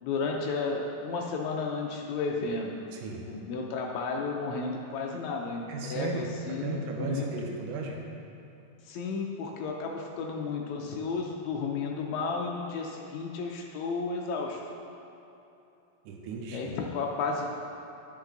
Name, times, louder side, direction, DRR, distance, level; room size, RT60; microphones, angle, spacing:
voice 1, 0.0-2.9 3.2-7.3 8.8-14.6 16.5-17.5, left 4 dB, 85° left, 0 dB, 1.6 m, -33 dB
voice 2, 2.9-3.2 5.7-8.0 16.1-16.7, right 3 dB, 75° right, 0 dB, 2.2 m, -35 dB
10.0 x 5.3 x 3.8 m, 2.9 s
omnidirectional pair, 4.0 m